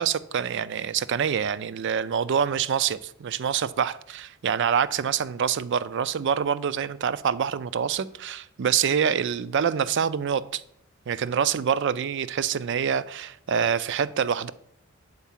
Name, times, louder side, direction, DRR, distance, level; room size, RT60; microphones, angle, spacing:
voice 1, 0.0-10.6 11.1-14.5, right 7 dB, 55° right, 0.4 m, -26 dB
8.1 x 4.6 x 7.3 m
head